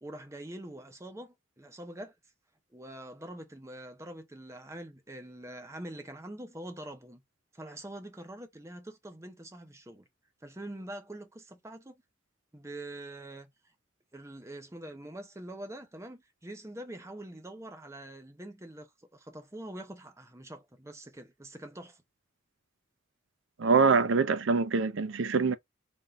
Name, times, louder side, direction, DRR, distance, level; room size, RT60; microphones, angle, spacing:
voice 1, 0.0-2.1 2.7-7.2 7.5-10.1 10.4-12.0 12.5-13.5 14.1-22.0, right 1 dB, 15° right, 0.8 m, -44 dB
voice 2, 23.6-25.5, right 4 dB, 75° right, 0.6 m, -24 dB
3.6 x 2.7 x 3.5 m
head